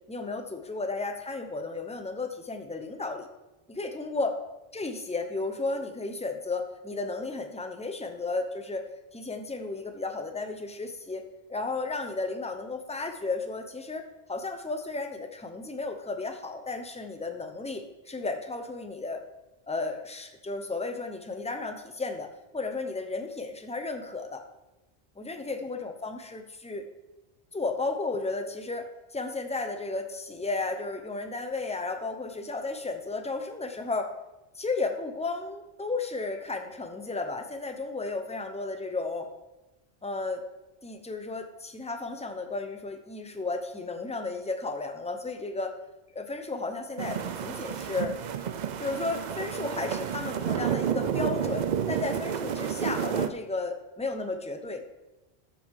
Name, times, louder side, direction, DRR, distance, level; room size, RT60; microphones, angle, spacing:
voice 1, 0.1-3.3 3.7-4.3 4.7-11.2 11.5-14.0 14.3-19.2 19.7-22.3 22.5-24.4 25.2-26.9 27.5-28.9 29.1-34.1 34.5-39.3 40.0-40.4 40.8-45.7 46.1-48.1 48.8-54.8, left 3 dB, 5° left, 6 dB, 0.7 m, -33 dB
sound 1, 47.0-53.3, right 8 dB, 55° right, 0.6 m, -30 dB
13.0 x 5.5 x 4.8 m, 1.0 s
omnidirectional pair, 1.1 m